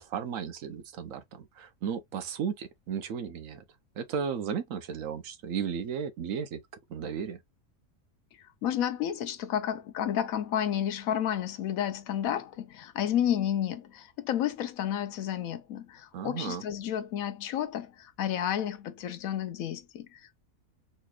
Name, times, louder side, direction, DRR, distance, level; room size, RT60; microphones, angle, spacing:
voice 1, 0.0-3.6 4.0-6.6 6.9-7.4 16.1-16.6, right 7 dB, 65° right, 1.0 m, -34 dB
voice 2, 8.4-20.4, left 10 dB, 75° left, 1.0 m, -31 dB
4.1 x 3.1 x 2.3 m
omnidirectional pair, 1.6 m